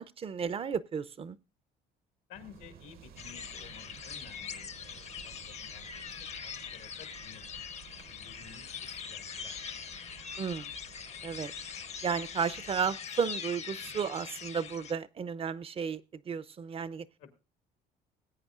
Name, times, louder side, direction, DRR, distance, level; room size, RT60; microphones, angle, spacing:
voice 1, 0.0-1.4 10.4-10.7 11.2-11.5 12.0-17.1, right 6 dB, 35° right, 17 dB, 0.5 m, -33 dB
voice 2, 2.3-6.1 6.4-7.4 8.1-10.0 10.3-10.4 17.2-17.4, left 9 dB, 85° left, 6 dB, 2.0 m, -54 dB
sound 1, 2.3-13.0, right 8 dB, 65° right, 0.9 m, -54 dB
sound 2, 3.2-14.9, left 7 dB, 40° left, 0.7 m, -42 dB
20.0 x 8.5 x 2.4 m, 0.30 s
cardioid pair, 110°, 17 cm